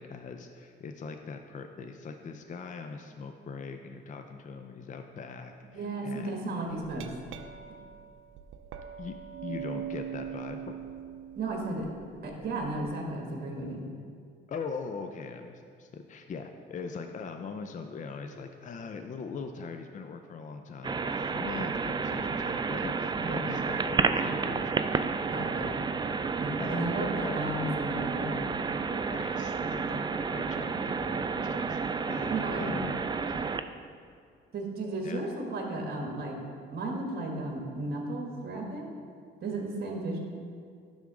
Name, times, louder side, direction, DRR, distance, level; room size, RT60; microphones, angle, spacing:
voice 1, 0.0-6.4 9.0-10.7 14.5-25.1 26.6-27.4 29.1-31.8 32.1-33.0 35.0-35.2, left 5 dB, 40° left, 6 dB, 0.5 m, -41 dB
voice 2, 5.6-7.1 11.4-11.9 12.2-13.8 23.2-23.4 25.2-25.8 26.4-28.4 32.3-32.8 34.5-36.4 36.7-38.9 39.4-40.2, right 2 dB, 55° right, 0 dB, 1.6 m, -34 dB
Glass, 6.7-12.8, right 9 dB, 85° right, 0.5 m, -42 dB
sound 1, 20.8-33.6, right 5 dB, 25° right, 0.3 m, -31 dB
10.5 x 3.6 x 6.1 m, 2.2 s
cardioid pair, 90°, 20 cm